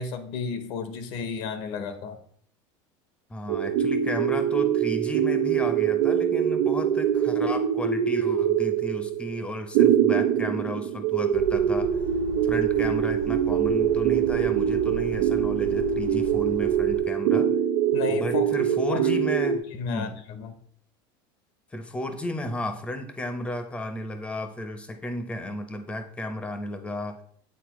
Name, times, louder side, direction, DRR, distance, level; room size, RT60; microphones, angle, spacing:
voice 1, 0.0-2.2 17.9-18.4 18.9-19.0 19.8-20.5, left 5 dB, 60° left, 8 dB, 0.8 m, -32 dB
voice 2, 3.3-11.9 12.4-17.5 18.1-20.2 21.7-27.2, left 1 dB, 10° left, 8 dB, 0.6 m, -34 dB
sound 1, 3.5-19.6, right 9 dB, 80° right, 0.5 m, -24 dB
sound 2, 11.3-17.0, right 3 dB, 55° right, 1.2 m, -39 dB
8.4 x 4.1 x 3.0 m, 0.62 s
cardioid pair, 155°, 12 cm